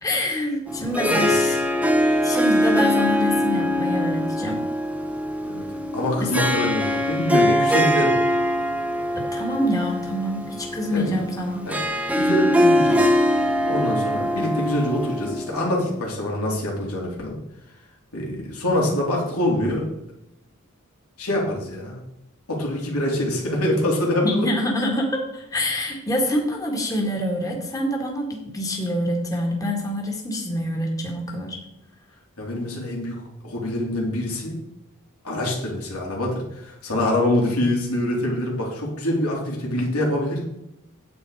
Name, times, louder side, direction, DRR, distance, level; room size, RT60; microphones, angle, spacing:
voice 1, 0.0-1.6 2.2-4.6 6.2-6.3 9.2-11.6 24.2-31.6, left 1 dB, 15° left, -1 dB, 1.8 m, -26 dB
Harp, 0.7-15.9, equal, 5° right, 0.9 m, -22 dB
voice 2, 0.9-1.4 5.4-5.6 5.9-8.1 10.9-11.2 11.7-11.8 12.1-13.1 13.7-17.4 18.1-19.9 21.2-22.0 22.5-24.5 32.4-34.6 35.2-40.4, left 1 dB, 85° left, -2 dB, 3.2 m, -25 dB
9.6 x 8.2 x 4.8 m, 0.85 s
head